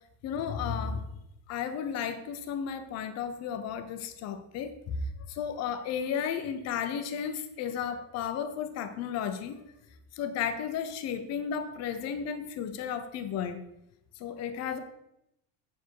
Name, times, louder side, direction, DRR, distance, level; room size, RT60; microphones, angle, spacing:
voice 1, 0.2-1.1 1.5-5.0 5.3-9.6 10.2-13.6 14.2-14.8, left 7 dB, 35° left, 9 dB, 0.7 m, -33 dB
8.0 x 7.0 x 4.6 m, 0.85 s
cardioid pair, 175°, 49 cm